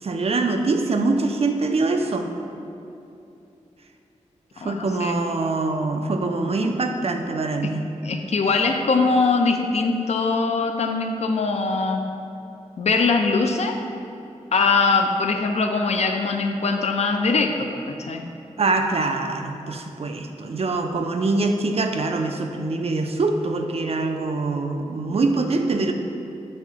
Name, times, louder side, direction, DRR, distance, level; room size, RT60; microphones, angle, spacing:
voice 1, 0.0-2.3 4.6-7.9 18.6-25.9, right 3 dB, 50° right, 5 dB, 0.4 m, -24 dB
voice 2, 4.6-5.2 8.0-12.0 12.8-13.8 14.5-18.3, left 4 dB, 60° left, 4 dB, 0.4 m, -22 dB
6.3 x 2.4 x 3.5 m, 2.8 s
cardioid pair, 50°, 13 cm